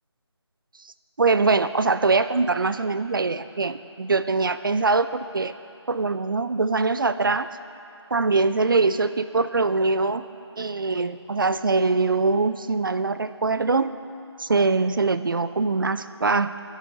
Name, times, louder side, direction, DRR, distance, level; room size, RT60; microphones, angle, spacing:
voice 1, 1.2-5.5 5.9-7.5 8.1-10.2 10.6-13.9 14.4-16.6, right 3 dB, 50° right, 13 dB, 0.5 m, -23 dB
27.0 x 11.0 x 2.8 m, 2.6 s
figure-of-eight pair, 160°, 15 cm